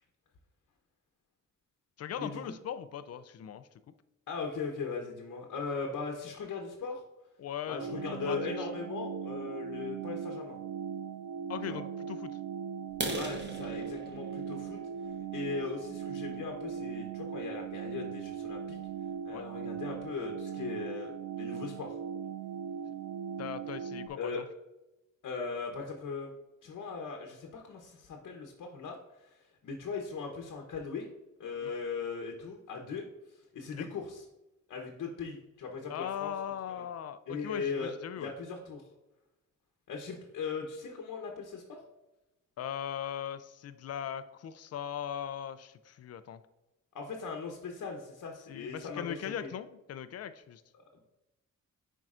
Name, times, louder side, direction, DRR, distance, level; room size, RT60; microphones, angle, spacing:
voice 1, 2.0-3.7 7.4-8.4 11.5-12.4 19.3-19.5 23.4-24.5 31.6-31.7 33.7-33.9 35.9-38.3 42.6-46.4 48.5-50.6, left 9 dB, 50° left, 12 dB, 0.5 m, -39 dB
voice 2, 4.3-7.0 7.7-10.6 11.7-11.8 13.1-14.8 15.3-18.8 19.2-22.0 24.2-24.4 25.2-26.3 26.6-29.0 29.2-31.1 31.4-33.1 33.5-34.2 34.7-36.3 36.7-36.8 37.3-38.9 39.9-41.8 46.9-49.5 50.8-51.0, left 5 dB, 70° left, 2 dB, 1.0 m, -39 dB
sound 1, 7.8-24.1, right 7 dB, 55° right, 0.6 m, -39 dB
sound 2, 12.9-16.6 17.2-17.4 17.8-17.9 18.4-18.5 18.8-18.9 19.4-19.5 19.7-20.2, right 2 dB, 35° right, 1.2 m, -40 dB
10.5 x 4.6 x 2.5 m, 0.98 s
cardioid pair, 125°, 31 cm